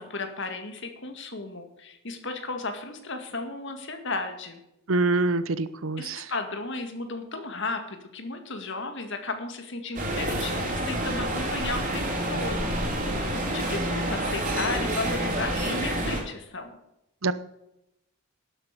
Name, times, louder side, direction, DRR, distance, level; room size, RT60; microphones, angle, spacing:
voice 1, 0.0-4.6 6.0-16.8, left 3 dB, 55° left, 6 dB, 2.1 m, -34 dB
voice 2, 4.9-6.2 17.2-17.3, right 2 dB, 65° right, 14 dB, 0.8 m, -25 dB
sound 1, 9.9-16.2, right 1 dB, 35° right, 3.5 m, -28 dB
12.0 x 7.9 x 6.7 m, 0.85 s
head